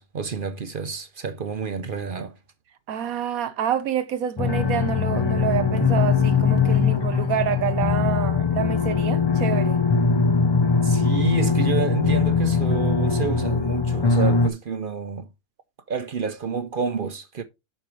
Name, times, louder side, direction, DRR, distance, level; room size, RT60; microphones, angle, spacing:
voice 1, 0.0-2.3 10.8-15.3 15.9-17.4, right 5 dB, 55° right, 0.6 m, -29 dB
voice 2, 2.9-9.8 11.4-11.5, right 9 dB, 75° right, 1.3 m, -27 dB
sound 1, 4.4-14.5, left 5 dB, 35° left, 0.4 m, -21 dB
8.3 x 6.4 x 3.1 m
omnidirectional pair, 1.5 m